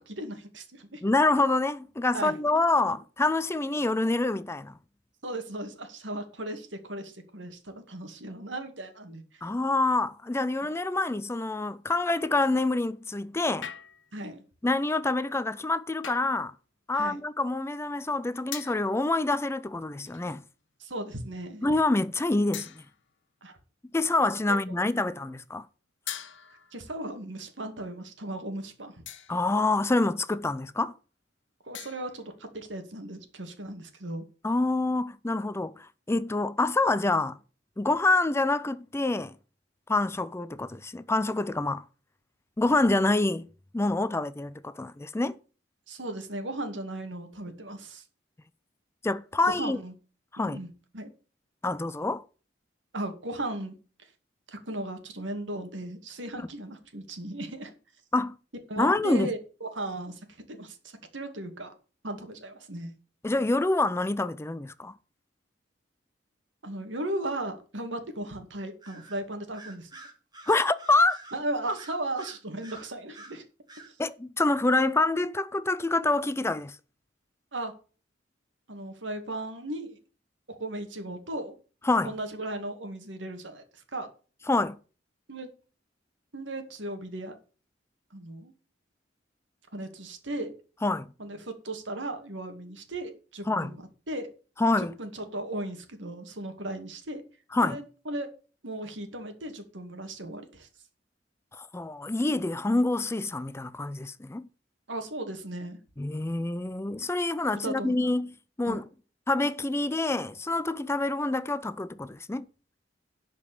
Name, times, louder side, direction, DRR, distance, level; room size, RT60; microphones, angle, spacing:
voice 1, 0.0-1.0 2.1-2.6 5.2-9.2 10.6-10.7 14.1-14.4 16.9-17.2 20.8-21.6 23.4-23.6 24.7-24.8 26.7-29.0 31.6-34.2 45.9-48.0 49.4-49.9 50.4-50.7 50.9-51.1 52.9-53.7 54.5-57.7 58.7-60.2 60.5-61.7 62.0-62.9 66.6-69.9 71.3-73.4 73.9-74.0 77.5-77.7 78.7-80.0 80.5-81.6 82.0-84.1 85.3-85.5 86.3-87.4 88.1-88.5 89.7-90.5 91.2-94.3 94.8-97.2 97.6-98.3 98.6-100.7 104.9-105.8 107.6-108.1 108.7-108.8, right 1 dB, 80° right, 2.3 m, -36 dB
voice 2, 1.0-4.7 9.4-13.7 14.6-16.5 16.9-20.4 21.6-22.8 23.9-25.7 29.3-30.9 34.4-37.4 37.8-39.3 39.9-41.8 42.6-43.5 43.7-45.4 49.0-49.8 50.3-50.6 51.6-52.2 58.1-58.4 58.8-59.3 63.2-64.9 70.5-71.2 74.0-76.8 81.9-82.1 84.5-84.8 90.8-91.1 93.5-93.7 94.6-94.9 97.5-97.8 101.6-104.5 106.0-108.8 109.3-112.5, left 2 dB, 15° left, 0.4 m, -26 dB
sound 1, 13.6-14.2 16.0-16.4 18.5-18.9 20.0-20.5 21.1-21.3 22.5-23.1 26.1-26.9 29.1-29.5 31.7-32.3, left 10 dB, 85° left, 1.1 m, -41 dB
Bird vocalization bird call bird song, 68.8-69.2 69.5-73.4 73.7-73.9, right 3 dB, 25° right, 2.4 m, -48 dB
11.5 x 5.2 x 8.7 m
head